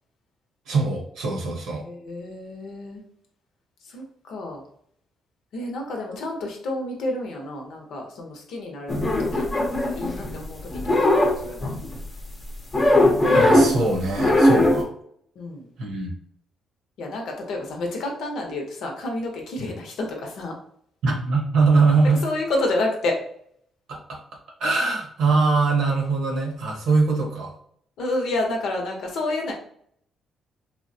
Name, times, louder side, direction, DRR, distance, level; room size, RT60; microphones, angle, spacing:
voice 1, 0.7-1.8 13.3-14.9 15.8-16.1 19.6-19.7 21.0-22.2 23.9-24.2 24.6-27.5, right 3 dB, 80° right, -1 dB, 0.9 m, -22 dB
voice 2, 1.8-3.0 3.8-4.6 5.5-8.9 9.2-11.7 15.4-15.7 17.0-20.6 22.2-23.2 28.0-29.5, left 2 dB, 80° left, 1 dB, 0.7 m, -30 dB
sound 1, 8.9-10.4 10.7-12.0 12.7-13.8 14.2-14.8, left 1 dB, 25° left, 0.7 m, -19 dB
3.1 x 2.1 x 2.6 m, 0.65 s
cardioid pair, 90°, 0 cm